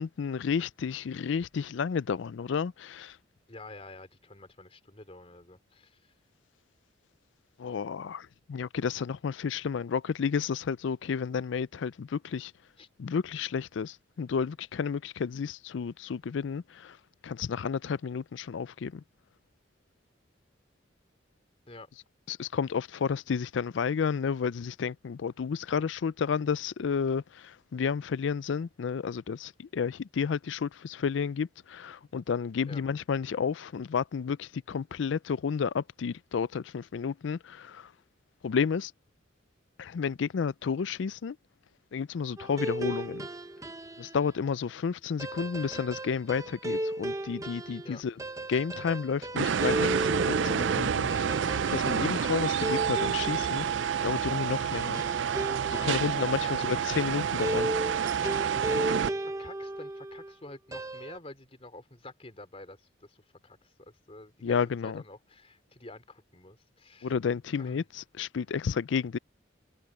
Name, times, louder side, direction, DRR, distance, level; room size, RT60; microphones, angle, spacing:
voice 1, 0.0-3.2 7.6-12.5 13.0-17.0 17.2-19.0 22.3-37.9 38.4-38.9 39.8-41.4 41.9-43.2 44.0-48.1 48.5-51.1 51.7-55.0 55.7-57.7 64.4-65.0 67.0-69.2, left 6 dB, 70° left, 0.4 m, -31 dB
voice 2, 3.5-6.0 12.8-12.9 21.7-21.9 32.7-32.8 47.8-48.0 55.8-56.7 58.5-67.1 67.6-67.8, left 2 dB, 30° left, 3.1 m, -48 dB
sound 1, 42.4-44.2 45.2-56.4 57.4-60.3 60.7-61.2, right 1 dB, 15° right, 0.8 m, -35 dB
sound 2, 49.4-59.1, right 7 dB, 70° right, 0.4 m, -28 dB
head